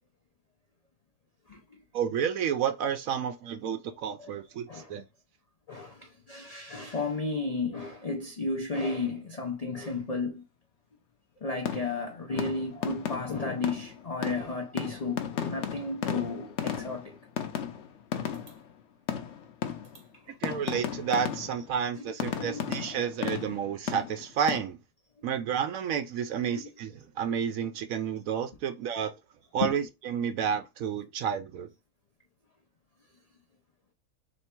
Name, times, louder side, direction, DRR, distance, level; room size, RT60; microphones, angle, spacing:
voice 1, 1.9-5.0 20.4-24.8 25.2-29.1 29.5-31.7, right 8 dB, 70° right, 0.9 m, -30 dB
voice 2, 5.7-10.4 11.4-17.2 20.3-20.4 22.3-23.0 26.5-26.7 29.6-29.8, left 3 dB, 75° left, 0.3 m, -33 dB
sound 1, 11.7-12.1 12.4-18.7 19.1-20.2 20.4-21.7 22.2-24.6, left 8 dB, 60° left, 0.8 m, -35 dB
3.3 x 3.1 x 4.4 m
omnidirectional pair, 1.7 m